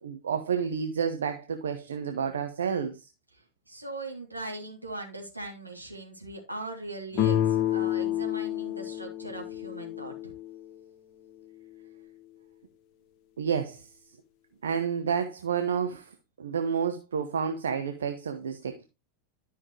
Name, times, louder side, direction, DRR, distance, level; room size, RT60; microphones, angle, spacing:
voice 1, 0.0-3.1 13.4-13.9 14.6-16.1 16.4-18.8, right 7 dB, 65° right, 0.9 m, -30 dB
voice 2, 3.7-10.3, right 2 dB, 85° right, 2.9 m, -40 dB
sound 1, 7.1-10.8, left 12 dB, 40° left, 1.1 m, -29 dB
12.0 x 5.7 x 3.2 m
figure-of-eight pair, 90°, 0 cm